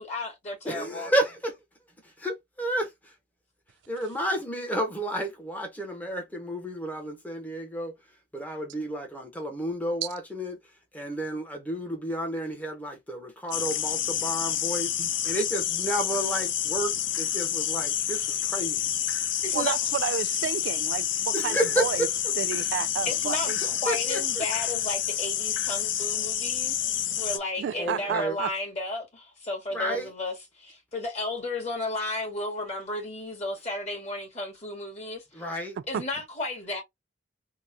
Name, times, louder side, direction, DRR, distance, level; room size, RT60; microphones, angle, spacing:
voice 1, 0.0-1.1 19.4-19.8 23.1-26.9 27.2-35.5 35.9-36.8, left 2 dB, 35° left, 1.9 m, -33 dB
voice 2, 0.6-1.5 2.2-2.9 3.9-7.9 8.3-10.6 10.9-14.9 15.2-18.9 21.3-22.1 23.9-24.4 27.7-28.4 29.7-30.1 35.3-35.8, right 1 dB, 10° left, 1.0 m, -31 dB
sound 1, 13.5-27.4, left 11 dB, 85° left, 0.5 m, -28 dB
voice 3, 19.5-22.1 22.4-23.6 27.6-28.5 35.9-36.0, right 8 dB, 70° right, 0.3 m, -31 dB
3.8 x 2.3 x 2.8 m
head